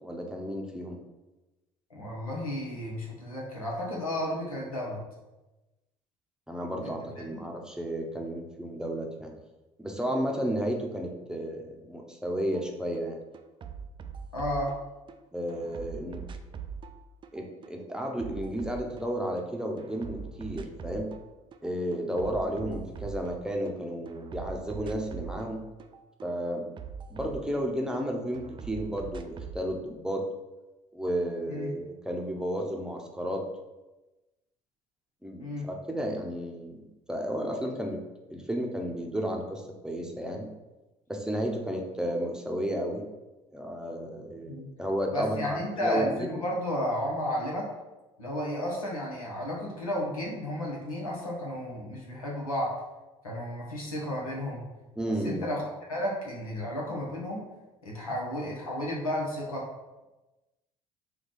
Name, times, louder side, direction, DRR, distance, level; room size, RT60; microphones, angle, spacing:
voice 1, 0.0-1.0 6.5-9.3 9.8-13.2 15.3-16.2 17.3-21.1 21.6-25.6 26.2-26.7 27.1-30.2 30.9-33.4 35.2-36.8 37.1-38.0 38.3-40.5 41.1-43.0 43.5-46.4 55.0-55.5, equal, 5° right, 1 dB, 0.7 m, -32 dB
voice 2, 1.9-5.0 6.8-6.9 7.3-7.5 14.3-14.7 31.5-31.7 35.4-35.7 44.5-44.7 45.1-47.7 48.2-52.7 53.2-54.6 55.1-55.6 55.9-57.4 57.8-59.7, left 1 dB, 85° left, -2 dB, 0.9 m, -32 dB
sound 1, 12.5-12.7 12.9-15.2 15.5-19.5 19.8-21.2 21.5-23.8 24.1-28.0 28.3-29.6, right 6 dB, 30° right, 0.4 m, -42 dB
4.6 x 2.3 x 3.9 m, 1.1 s
figure-of-eight pair, 60°, 18 cm